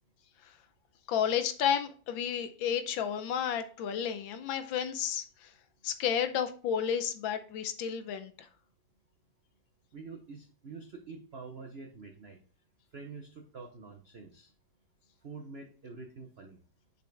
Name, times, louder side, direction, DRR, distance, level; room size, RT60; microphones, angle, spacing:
voice 1, 1.1-5.5 5.8-8.5, left 8 dB, 80° left, 1.4 m, -32 dB
voice 2, 9.9-12.4 12.9-14.5 15.2-16.6, right 4 dB, 70° right, 0.5 m, -46 dB
6.8 x 5.4 x 3.3 m
omnidirectional pair, 2.2 m